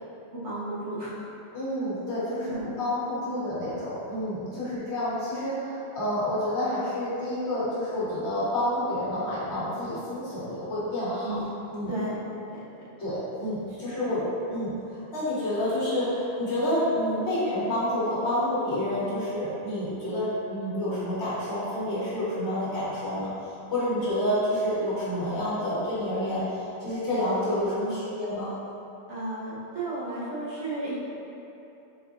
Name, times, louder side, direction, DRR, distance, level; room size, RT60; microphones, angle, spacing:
voice 1, 0.3-1.1 2.4-2.7 11.2-11.4 11.9-12.2 12.5-12.6 13.7-13.8 17.2-17.3 27.8-28.1 29.1-31.0, right 2 dB, 80° right, -9 dB, 1.4 m, -33 dB
voice 2, 1.5-11.4 11.7-11.9 13.0-23.3 23.7-28.5, left 1 dB, 65° left, -10 dB, 1.6 m, -29 dB
4.3 x 3.9 x 2.6 m, 2.8 s
omnidirectional pair, 1.2 m